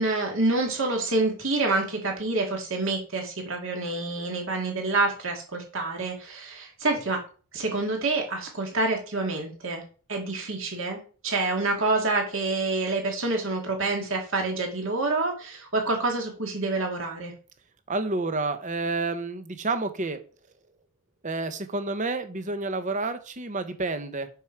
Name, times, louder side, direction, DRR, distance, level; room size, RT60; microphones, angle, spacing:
voice 1, 0.0-7.2 7.5-9.8 10.1-17.3, right 2 dB, 60° right, 2 dB, 2.3 m, -27 dB
voice 2, 17.9-20.2 21.2-24.3, right 3 dB, 35° right, 10 dB, 0.8 m, -29 dB
6.9 x 6.3 x 4.6 m, 0.39 s
head